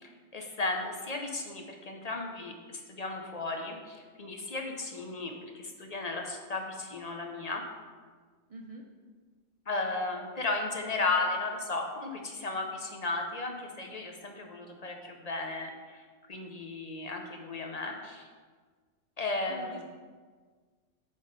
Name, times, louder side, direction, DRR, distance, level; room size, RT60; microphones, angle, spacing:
voice 1, 0.0-7.7 9.7-16.0 16.3-18.3 19.2-19.8, left 3 dB, 40° left, 3 dB, 0.6 m, -35 dB
voice 2, 8.5-8.9 19.5-19.8, right 3 dB, 65° right, 2 dB, 0.3 m, -45 dB
8.1 x 3.6 x 5.2 m, 1.5 s
omnidirectional pair, 1.4 m